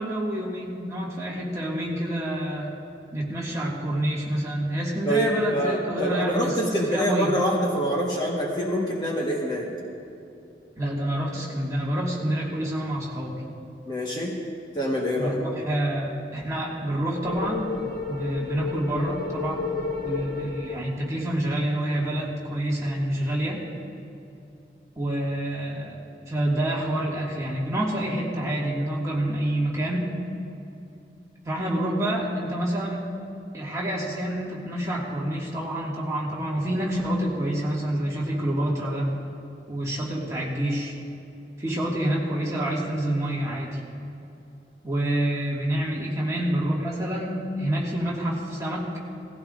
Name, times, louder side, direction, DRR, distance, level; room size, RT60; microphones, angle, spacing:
voice 1, 0.0-2.7 3.1-6.6 6.9-7.3 10.8-13.4 15.2-17.7 18.1-19.7 20.0-23.6 25.0-26.0 26.3-30.1 31.4-33.0 33.5-39.1 39.7-40.9 41.6-43.8 44.8-48.9, right 1 dB, 20° right, -5 dB, 2.0 m, -27 dB
voice 2, 5.1-9.7 13.8-14.4 14.7-15.4, equal, 25° left, -3 dB, 1.4 m, -25 dB
sound 1, 17.2-21.7, left 4 dB, 50° left, 1.4 m, -32 dB
18.5 x 15.5 x 2.5 m, 2.8 s
head